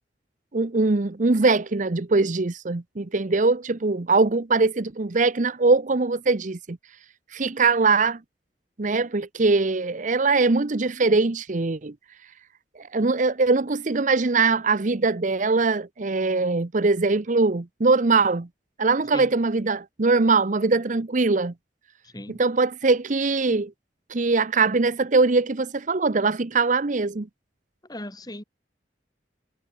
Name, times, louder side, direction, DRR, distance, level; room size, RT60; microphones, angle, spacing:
voice 1, 0.5-6.8 7.3-8.2 8.8-11.9 12.8-18.5 18.8-21.5 22.3-23.7 24.1-27.3, right 3 dB, 45° right, 0.8 m, -22 dB
voice 2, 22.0-22.4 27.9-28.4, left 1 dB, 20° left, 5.5 m, -38 dB
head